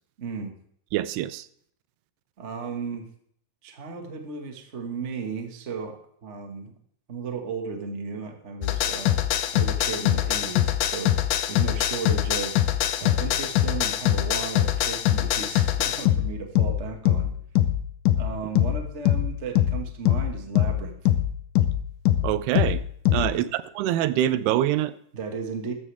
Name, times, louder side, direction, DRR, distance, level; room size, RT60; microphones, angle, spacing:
voice 1, 0.2-0.5 2.4-3.0 3.6-6.7 7.1-9.2 9.5-12.6 13.0-17.3 18.2-21.0 23.1-23.5 25.1-25.7, right 5 dB, 60° right, 0.7 m, -35 dB
voice 2, 0.9-1.5 22.2-22.8 23.1-25.0, right 12 dB, 90° right, 2.8 m, -25 dB
sound 1, 8.6-23.4, left 12 dB, 75° left, 1.9 m, -23 dB
13.5 x 13.5 x 3.5 m
omnidirectional pair, 4.6 m